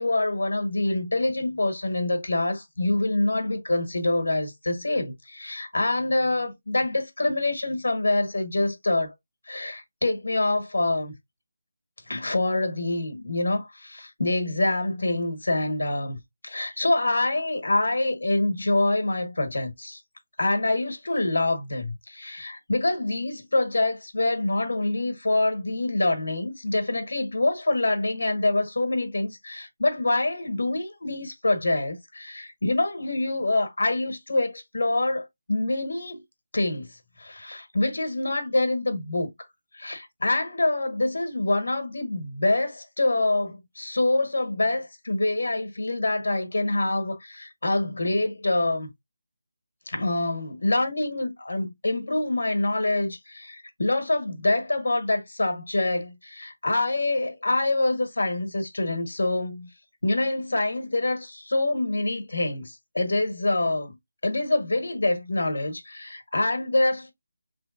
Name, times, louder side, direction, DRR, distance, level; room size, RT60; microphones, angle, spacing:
voice 1, 0.0-9.1 9.5-11.1 12.1-20.0 20.4-36.2 36.5-39.3 39.7-48.9 49.9-59.7 60.0-64.0 64.2-67.1, left 2 dB, 80° left, 1.4 m, -26 dB
3.4 x 3.3 x 2.6 m
figure-of-eight pair, 180°, 0 cm